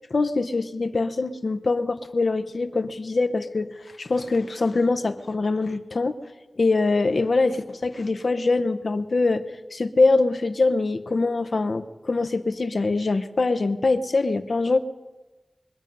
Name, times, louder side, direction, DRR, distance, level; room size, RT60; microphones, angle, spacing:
voice 1, 0.1-6.1 6.6-9.4 9.7-14.8, left 3 dB, 60° left, 9 dB, 0.8 m, -23 dB
23.0 x 9.0 x 5.4 m, 1.2 s
wide cardioid pair, 100°, 0 cm